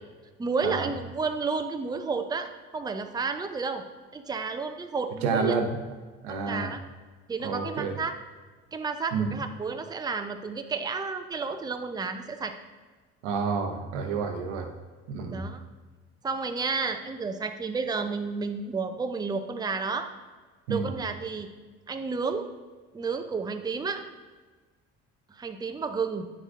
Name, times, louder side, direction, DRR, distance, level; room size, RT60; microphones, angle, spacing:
voice 1, 0.4-3.8 4.1-5.5 6.3-6.8 7.3-8.1 8.7-12.6 15.3-15.6 16.2-20.1 20.7-21.5 21.9-22.5 22.9-24.0 25.3-26.3, right 4 dB, 10° right, 6 dB, 0.5 m, -31 dB
voice 2, 5.2-5.8 6.2-6.7 7.4-7.9 9.1-9.4 13.2-14.7 15.1-15.4 20.7-20.9, right 5 dB, 90° right, 4 dB, 0.9 m, -29 dB
9.0 x 6.2 x 2.6 m, 1.4 s
supercardioid pair, 70°, 34 cm